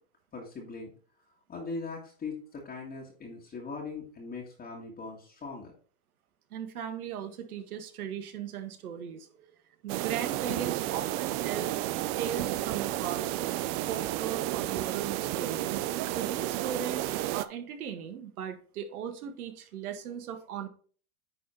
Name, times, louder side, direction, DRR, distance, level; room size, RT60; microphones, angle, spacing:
voice 1, 0.3-0.9 1.5-5.7, left 4 dB, 20° left, -2 dB, 2.0 m, -40 dB
voice 2, 6.5-9.3 9.8-11.8 12.2-13.3 13.9-15.8 16.1-20.7, right 8 dB, 75° right, 7 dB, 1.6 m, -38 dB
sound 1, 9.9-17.4, right 15 dB, 30° right, 0.4 m, -32 dB
9.9 x 4.1 x 4.4 m, 0.43 s
hypercardioid pair, 120°, 44 cm